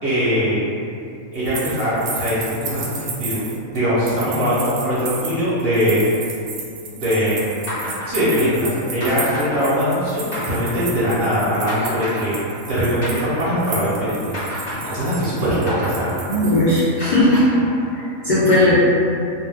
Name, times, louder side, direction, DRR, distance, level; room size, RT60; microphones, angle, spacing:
voice 1, 0.0-0.6 1.3-3.5 3.7-6.0 6.9-12.3 12.7-16.3, equal, 55° right, -10 dB, 0.7 m, -21 dB
sound 1, 1.3-17.0 17.3-17.4, right 4 dB, 75° right, 1.0 m, -33 dB
sound 2, 7.7-14.0 14.3-18.2, equal, 40° left, 1.1 m, -31 dB
voice 2, 16.3-17.4 17.9-18.8, left 1 dB, 80° left, -10 dB, 0.4 m, -17 dB
2.5 x 2.2 x 3.4 m, 2.5 s
omnidirectional pair, 1.5 m